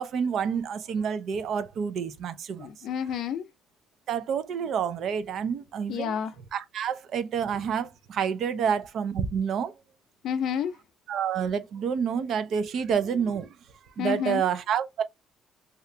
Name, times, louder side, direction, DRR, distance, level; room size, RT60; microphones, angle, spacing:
voice 1, 0.0-2.7 4.1-6.2 6.5-9.7 11.1-13.5 14.0-15.0, right 7 dB, 50° right, 0.4 m, -28 dB
voice 2, 2.6-3.5 5.9-6.3 10.2-10.8 14.0-14.4, left 8 dB, 60° left, 0.4 m, -29 dB
2.8 x 2.4 x 3.2 m
cardioid pair, 170°, 0 cm